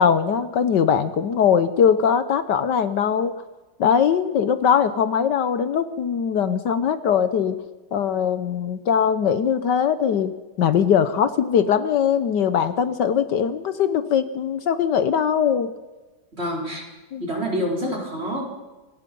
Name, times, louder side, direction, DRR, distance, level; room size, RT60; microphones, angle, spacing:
voice 1, 0.0-3.3 3.8-7.6 7.9-15.7 17.1-17.2, left 7 dB, 70° left, 12 dB, 1.4 m, -21 dB
voice 2, 16.4-16.8 17.2-18.4, equal, 30° right, 0 dB, 4.9 m, -27 dB
26.0 x 20.0 x 5.4 m, 1.2 s
omnidirectional pair, 2.1 m